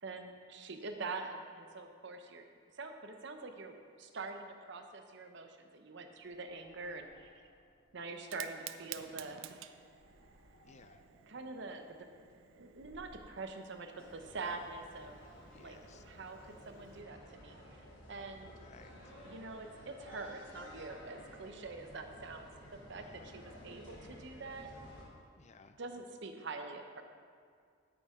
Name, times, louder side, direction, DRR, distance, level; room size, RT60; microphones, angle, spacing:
voice 1, 0.0-2.5 2.7-7.3 7.9-9.7 11.3-12.0 12.5-15.2 15.6-15.8 16.0-17.8 18.1-18.7 19.3-24.7 25.8-27.0, right 3 dB, 65° right, 6 dB, 0.8 m, -45 dB
sound 1, 6.1-13.4, equal, 55° left, 1.0 m, -65 dB
Fire, 8.1-17.0, right 12 dB, 80° right, 0.4 m, -53 dB
voice 2, 10.6-11.0 15.5-16.0 18.4-19.1 22.9-23.3 25.4-25.8, left 4 dB, 35° left, 9 dB, 0.4 m, -59 dB
sound 2, 14.0-25.0, equal, 85° left, 2.8 m, -53 dB
9.9 x 8.8 x 3.7 m, 2.1 s
head